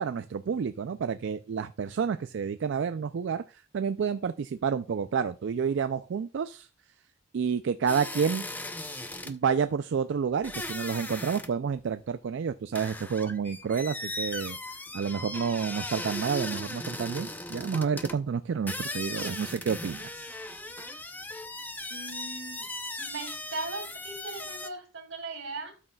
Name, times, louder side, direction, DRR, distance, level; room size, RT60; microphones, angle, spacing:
voice 1, 0.0-3.4 3.7-6.7 7.3-8.4 9.3-14.6 14.9-20.1 20.8-20.9, right 6 dB, 60° right, 11 dB, 0.3 m, -29 dB
sound 1, 7.9-9.4 10.4-11.5 11.8-11.9 12.8-18.2 18.7-24.7, left 2 dB, 10° left, 0.5 m, -38 dB
voice 2, 21.9-22.6 23.0-25.9, right 3 dB, 80° right, 5 dB, 2.3 m, -39 dB
12.5 x 6.4 x 2.3 m, 0.33 s
head